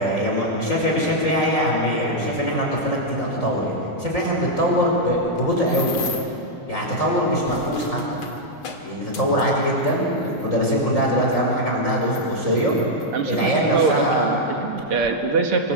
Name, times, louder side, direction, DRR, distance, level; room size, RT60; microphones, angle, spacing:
voice 1, 0.0-3.7 4.0-6.0 6.7-8.2 8.8-12.7 13.3-14.3, equal, 15° left, -3 dB, 5.1 m, -22 dB
sound 1, 5.1-6.4 7.2-10.5 11.3-11.4 12.0-13.5 14.3-14.4 14.8-15.1, left 6 dB, 45° left, 2.6 m, -37 dB
voice 2, 13.1-15.7, right 4 dB, 60° right, 4 dB, 1.5 m, -23 dB
27.5 x 27.5 x 7.9 m, 2.9 s
omnidirectional pair, 5.0 m